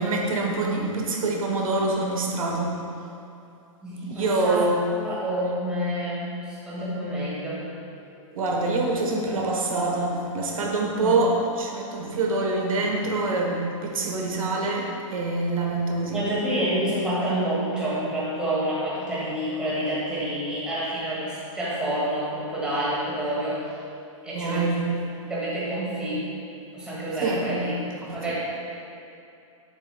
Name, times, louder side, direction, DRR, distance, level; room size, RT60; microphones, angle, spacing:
voice 1, 0.0-2.8 4.0-4.9 8.3-16.3 24.3-24.9 27.2-27.5 28.0-28.2, right 2 dB, 90° right, 0 dB, 1.3 m, -25 dB
voice 2, 3.8-7.7 10.8-11.3 16.1-23.8 24.2-24.8 25.3-26.3 26.7-27.7 28.1-28.4, right 1 dB, 5° right, -9 dB, 1.5 m, -28 dB
7.8 x 7.7 x 2.4 m, 2.7 s
hypercardioid pair, 165°, 17 cm